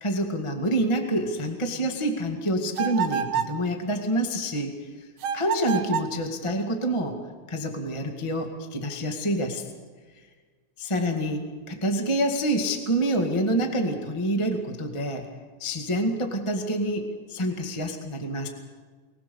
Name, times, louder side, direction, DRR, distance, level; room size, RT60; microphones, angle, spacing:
voice 1, 0.0-4.7 5.3-7.2 7.5-9.6 10.8-15.3 15.6-18.5, right 1 dB, 15° left, 3 dB, 1.0 m, -27 dB
sound 1, 2.7-3.6 5.2-6.2, right 8 dB, 75° right, 1.4 m, -28 dB
24.5 x 20.5 x 7.0 m, 1.5 s
omnidirectional pair, 4.1 m